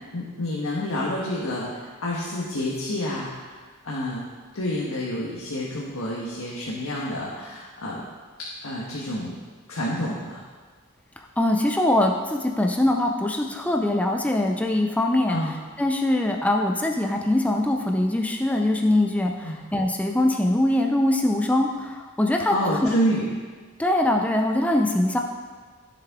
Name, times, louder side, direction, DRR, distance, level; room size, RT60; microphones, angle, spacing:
voice 1, 0.1-3.5 3.8-4.2 4.5-8.0 8.6-9.4 9.7-10.4 15.3-15.5 19.4-19.6 22.5-23.3, equal, 85° left, -5 dB, 1.4 m, -28 dB
voice 2, 11.4-15.4 15.8-22.5 22.8-22.9 23.8-25.2, left 1 dB, 5° left, 2 dB, 0.5 m, -22 dB
14.0 x 6.7 x 3.7 m, 1.5 s
head